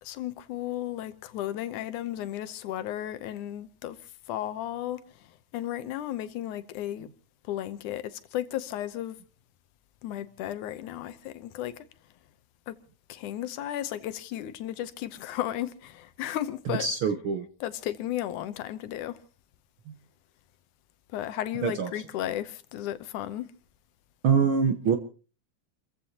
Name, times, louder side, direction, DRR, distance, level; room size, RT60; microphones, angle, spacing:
voice 1, 0.0-4.0 4.3-5.0 5.5-7.1 7.5-9.2 10.0-11.7 12.7-12.8 13.1-16.9 17.6-19.2 21.1-23.5, left 12 dB, 80° left, 2.3 m, -34 dB
voice 2, 16.7-17.5 19.9-20.0 21.6-21.9 24.2-25.0, right 6 dB, 65° right, 1.3 m, -24 dB
30.0 x 15.0 x 2.9 m
omnidirectional pair, 3.5 m